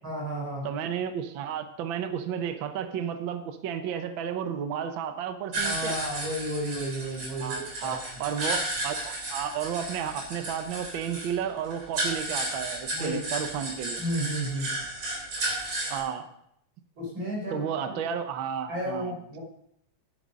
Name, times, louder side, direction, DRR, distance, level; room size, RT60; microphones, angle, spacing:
voice 1, 0.0-0.7 5.6-8.0 12.9-13.2 14.0-14.7 17.0-18.0 18.7-19.4, right 1 dB, 40° right, -1 dB, 4.6 m, -32 dB
voice 2, 0.6-5.9 7.4-14.0 15.9-16.2 17.5-19.2, right 8 dB, 85° right, 8 dB, 1.0 m, -32 dB
sound 1, 5.5-16.0, right 2 dB, 60° right, 4.8 m, -33 dB
11.5 x 8.6 x 5.1 m, 0.76 s
omnidirectional pair, 3.4 m